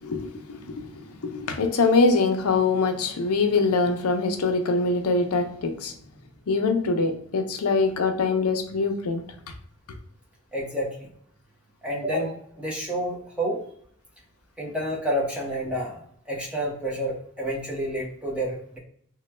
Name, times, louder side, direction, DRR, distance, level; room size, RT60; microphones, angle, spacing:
voice 1, 0.0-0.9 1.2-5.9 6.5-9.2, left 3 dB, 90° left, 5 dB, 0.5 m, -23 dB
voice 2, 10.5-11.1 11.8-13.6 14.6-16.0 16.3-18.8, equal, 5° right, -3 dB, 0.7 m, -29 dB
3.1 x 2.2 x 3.1 m, 0.66 s
head